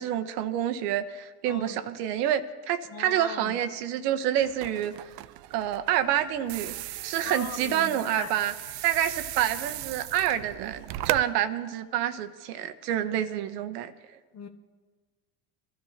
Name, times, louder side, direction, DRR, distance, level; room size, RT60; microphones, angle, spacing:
voice 1, 0.0-2.4 2.7-4.9 5.5-6.7 7.0-8.5 8.8-13.9, right 11 dB, 80° right, 9 dB, 1.1 m, -28 dB
voice 2, 1.4-1.8 2.9-3.6 7.2-8.3 14.3-14.5, left 6 dB, 35° left, 4 dB, 1.4 m, -40 dB
sound 1, 4.4-11.2, right 15 dB, 55° right, 0.6 m, -37 dB
22.5 x 13.0 x 2.9 m, 1.4 s
supercardioid pair, 90°, 46 cm